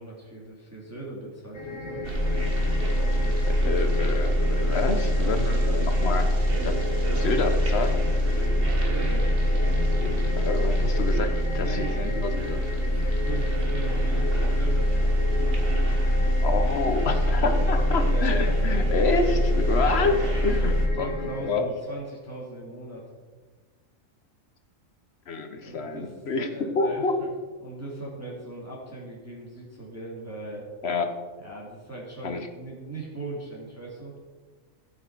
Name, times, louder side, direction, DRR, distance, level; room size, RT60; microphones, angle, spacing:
voice 1, 0.0-2.0 2.9-3.8 5.5-5.9 6.6-6.9 8.3-9.3 11.6-12.6 12.8-15.2 17.4-18.9 19.8-20.2 20.6-23.0 25.6-26.2 26.5-27.3 27.6-30.7 31.4-34.1, right 2 dB, 10° right, -4 dB, 2.0 m, -39 dB
sound 1, 1.5-21.5, left 3 dB, 20° left, 1.7 m, -36 dB
sound 2, 2.0-20.9, equal, 45° right, 1.6 m, -24 dB
voice 2, 3.4-6.3 6.6-6.8 7.2-8.0 10.3-11.3 11.5-12.6 16.4-21.7 25.3-27.2 30.8-31.1 32.2-32.5, left 4 dB, 55° left, 7 dB, 1.1 m, -28 dB
15.5 x 6.0 x 4.5 m, 1.4 s
omnidirectional pair, 1.4 m